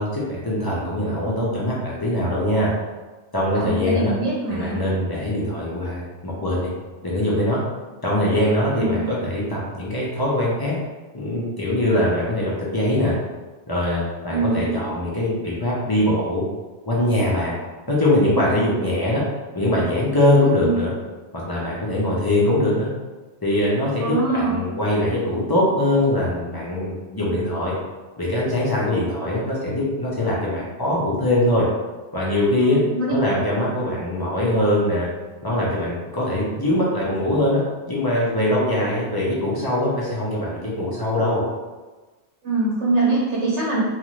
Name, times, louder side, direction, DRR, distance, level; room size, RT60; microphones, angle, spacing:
voice 1, 0.0-2.7 3.3-4.1 4.5-6.7 7.0-7.6 8.0-10.8 11.1-13.1 13.7-16.4 16.9-17.5 17.9-19.2 19.5-20.9 21.5-22.9 23.4-27.7 28.2-31.6 32.1-32.8 33.1-35.1 35.4-41.4, left 1 dB, 30° left, -6 dB, 0.4 m, -22 dB
voice 2, 3.6-4.8 8.7-9.1 14.3-14.7 20.6-20.8 24.0-24.6 32.6-33.1 42.4-43.8, right 2 dB, 75° right, -6 dB, 1.0 m, -23 dB
2.5 x 2.4 x 3.0 m, 1.2 s
omnidirectional pair, 1.2 m